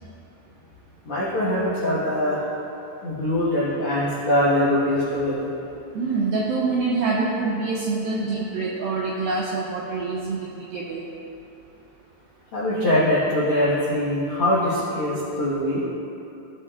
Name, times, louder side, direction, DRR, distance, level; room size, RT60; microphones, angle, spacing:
voice 1, 1.0-2.4 3.0-5.5 12.5-15.8, left 1 dB, 70° left, -9 dB, 1.3 m, -22 dB
voice 2, 5.9-11.0, right 3 dB, 85° right, -3 dB, 2.0 m, -25 dB
16.5 x 5.5 x 2.5 m, 2.9 s
omnidirectional pair, 4.9 m